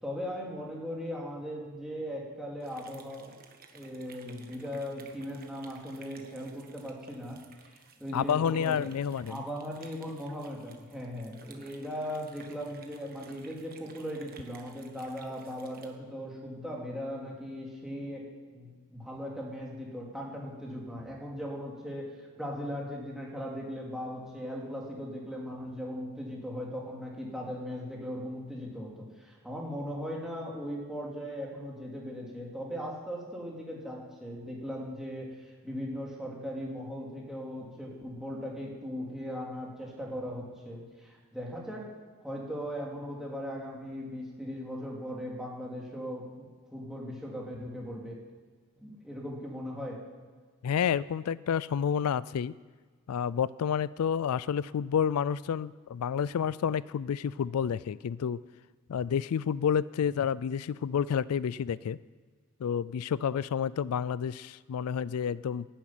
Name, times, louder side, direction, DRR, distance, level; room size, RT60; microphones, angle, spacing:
voice 1, 0.0-3.3 3.7-8.7 9.3-41.9 42.2-48.2 48.8-50.0, equal, ahead, -3 dB, 2.8 m, -38 dB
sound 1, 2.6-15.9, right 5 dB, 40° right, 1.4 m, -55 dB
voice 2, 8.1-9.4 50.6-52.5 53.1-58.4 58.9-62.0 62.6-65.7, left 7 dB, 80° left, 19 dB, 0.4 m, -29 dB
12.0 x 10.0 x 9.0 m, 1.5 s
head